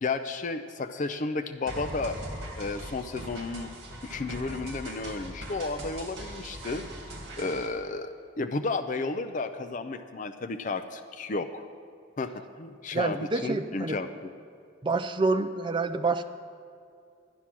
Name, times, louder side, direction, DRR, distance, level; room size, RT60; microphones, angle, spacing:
voice 1, 0.0-2.2 2.6-3.7 4.0-6.8 7.4-11.6 12.2-14.3, left 3 dB, 40° left, 7 dB, 0.4 m, -32 dB
sound 1, 1.7-7.7, right 1 dB, 50° right, 2.1 m, -40 dB
voice 2, 12.9-14.0 14.8-16.2, right 3 dB, 25° right, 8 dB, 0.4 m, -27 dB
11.5 x 9.8 x 6.0 m, 2.4 s
head